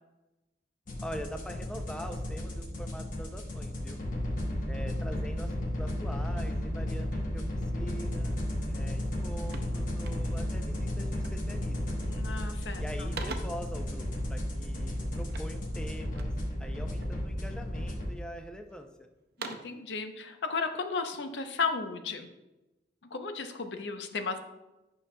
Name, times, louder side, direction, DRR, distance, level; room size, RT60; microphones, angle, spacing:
sound 1, 0.9-18.1, left 1 dB, 50° left, 1.1 m, -33 dB
voice 1, 1.0-4.0 4.7-8.4 8.7-12.0 12.8-16.3 16.6-19.1, equal, 5° left, 5 dB, 0.4 m, -44 dB
sound 2, 8.6-8.7 9.0-10.6 11.2-11.5 11.9-12.4 12.7-13.7 15.3-16.5 17.0-17.6 18.1-18.8 19.2-19.8, right 4 dB, 65° right, 0.6 m, -45 dB
voice 2, 12.1-13.1 19.4-22.3 23.1-24.4, left 4 dB, 80° left, 7 dB, 0.6 m, -34 dB
8.9 x 5.8 x 2.2 m, 1.0 s
head